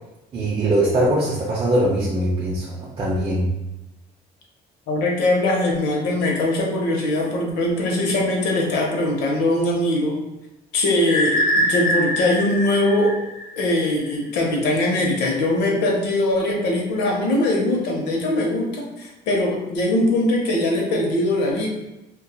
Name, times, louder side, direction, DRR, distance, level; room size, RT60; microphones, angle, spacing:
voice 1, 0.3-3.5, right 1 dB, 35° right, -6 dB, 0.5 m, -21 dB
voice 2, 4.9-10.2 10.7-13.2 13.6-21.7, left 1 dB, 80° left, 0 dB, 0.7 m, -21 dB
sound 1, 11.1-13.9, equal, 55° left, 0.9 m, -23 dB
2.8 x 2.3 x 2.3 m, 0.96 s
cardioid pair, 110°, 17 cm